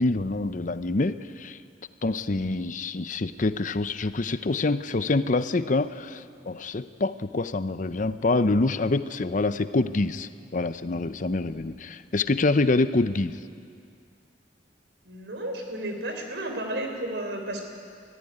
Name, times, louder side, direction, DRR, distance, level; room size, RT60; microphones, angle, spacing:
voice 1, 0.0-1.6 2.0-13.4, left 2 dB, 50° left, 13 dB, 0.7 m, -26 dB
voice 2, 15.1-17.6, right 1 dB, 90° right, 4 dB, 3.7 m, -32 dB
20.5 x 14.5 x 9.9 m, 2.3 s
head